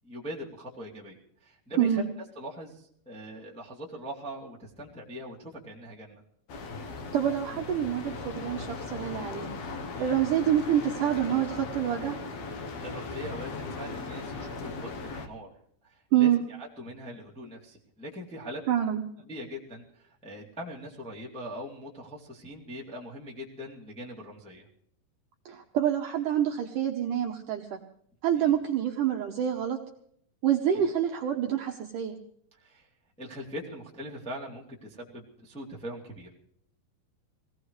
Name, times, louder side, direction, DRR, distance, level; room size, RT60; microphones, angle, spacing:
voice 1, 0.0-6.2 9.9-10.2 12.8-15.5 15.8-18.6 19.3-24.6 28.4-28.5 30.7-30.8 32.6-32.9 33.2-36.4, equal, 5° left, -4 dB, 1.3 m, -41 dB
sound 1, 6.5-15.3, left 3 dB, 85° left, 1.5 m, -38 dB
voice 2, 7.1-9.5 10.0-12.2 16.1-16.4 18.7-19.0 25.5-27.8 28.2-29.8 30.4-32.2, right 10 dB, 70° right, 2 dB, 2.0 m, -27 dB
23.5 x 17.5 x 3.2 m, 0.67 s
omnidirectional pair, 4.6 m